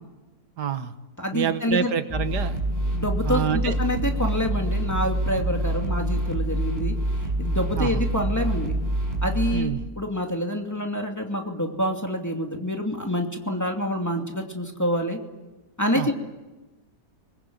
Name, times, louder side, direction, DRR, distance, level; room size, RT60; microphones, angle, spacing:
voice 1, 0.6-0.9 1.3-2.6 3.3-3.7 7.8-8.0 9.5-9.9 15.9-16.1, right 8 dB, 85° right, 10 dB, 1.9 m, -27 dB
voice 2, 1.2-1.9 2.9-6.9 7.4-8.8 9.2-9.7 10.0-15.2 15.8-16.1, equal, 10° left, 1 dB, 2.6 m, -27 dB
sound 1, 2.1-9.6, right 1 dB, 25° right, 6.4 m, -26 dB
27.0 x 21.0 x 9.4 m, 1.2 s
omnidirectional pair, 1.7 m